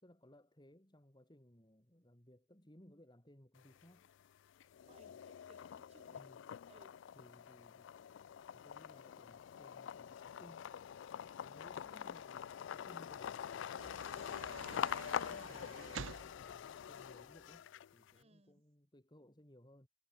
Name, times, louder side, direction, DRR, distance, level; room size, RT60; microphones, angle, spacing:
voice 1, 0.0-4.1 5.1-5.2 6.1-6.4 7.1-7.9 8.5-10.7 11.4-14.1 15.0-19.9, equal, 20° left, 3.1 m, -62 dB
sound 1, 3.6-4.2 4.6-18.1, left 9 dB, 65° left, 0.3 m, -45 dB
voice 2, 4.9-6.2 6.7-7.0 18.1-18.6, right 1 dB, 30° right, 6.9 m, -66 dB
sound 2, 13.8-17.6, right 5 dB, 75° right, 0.9 m, -51 dB
head